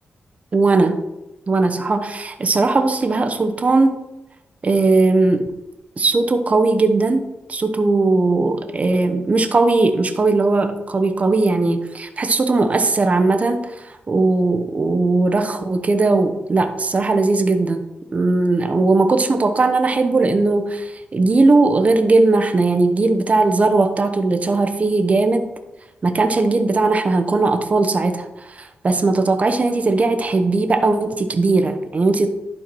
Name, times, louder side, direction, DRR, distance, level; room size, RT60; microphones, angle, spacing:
voice 1, 0.5-1.0 1.5-4.0 4.6-5.6 6.0-7.2 7.5-17.8 18.1-25.5 26.0-32.3, right 3 dB, 40° right, 6 dB, 0.9 m, -18 dB
11.0 x 4.6 x 4.5 m, 0.96 s
cardioid pair, 80°, 4 cm